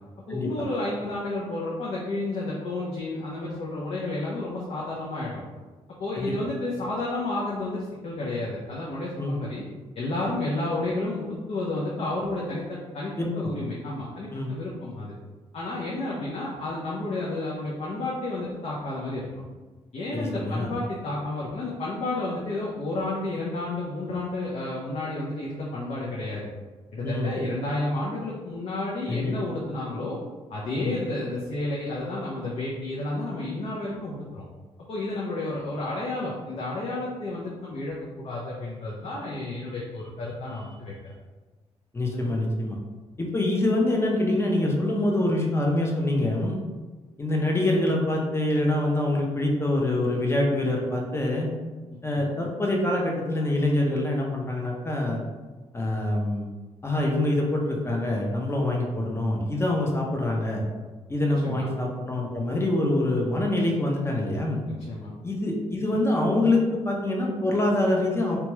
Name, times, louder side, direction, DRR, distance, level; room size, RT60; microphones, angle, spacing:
voice 1, 0.3-5.4 6.0-9.6 10.0-15.2 15.5-19.4 19.9-26.5 26.9-30.2 30.5-34.4 34.9-41.1 42.1-42.3 52.1-52.3 61.4-61.7 64.9-65.1, left 2 dB, 60° left, -5 dB, 0.6 m, -31 dB
voice 2, 13.2-13.5 14.3-14.5 20.1-20.7 27.0-27.3 29.1-29.3 30.7-30.9 41.9-42.8 43.2-46.6 47.2-51.5 52.0-55.2 55.7-56.5 56.8-60.6 61.1-64.6 65.2-68.4, left 1 dB, 20° left, -1 dB, 0.7 m, -25 dB
2.9 x 2.3 x 2.9 m, 1.3 s
cardioid pair, 80°, 12 cm